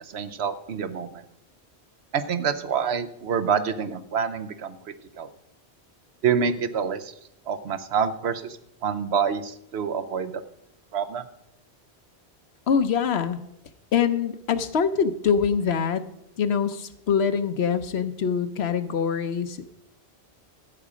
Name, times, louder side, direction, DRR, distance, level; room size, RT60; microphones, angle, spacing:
voice 1, 0.1-1.2 2.1-4.8 5.2-5.3 6.2-7.0 7.5-8.4 8.8-10.4 10.9-11.2, right 7 dB, 75° right, 10 dB, 1.0 m, -26 dB
voice 2, 12.7-13.4 13.9-16.0 16.4-19.8, left 6 dB, 75° left, 11 dB, 1.0 m, -24 dB
13.0 x 8.5 x 5.0 m, 0.80 s
omnidirectional pair, 1.1 m